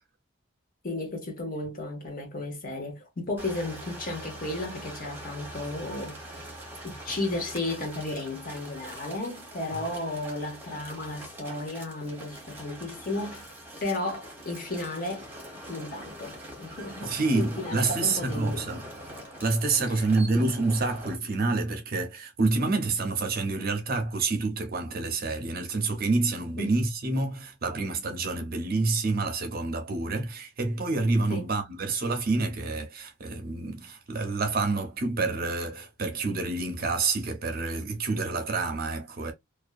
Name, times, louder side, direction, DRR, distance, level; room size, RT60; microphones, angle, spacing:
voice 1, 0.8-6.4 6.8-13.4 13.8-15.3 15.7-18.7 19.8-20.0 20.3-20.5 26.6-26.7 31.3-31.5, left 2 dB, 40° left, 0.8 m, -34 dB
sound 1, 3.4-21.1, right 1 dB, 10° right, 0.8 m, -43 dB
voice 2, 17.0-18.8 19.4-39.3, right 3 dB, 45° right, 0.6 m, -28 dB
2.6 x 2.2 x 2.3 m
head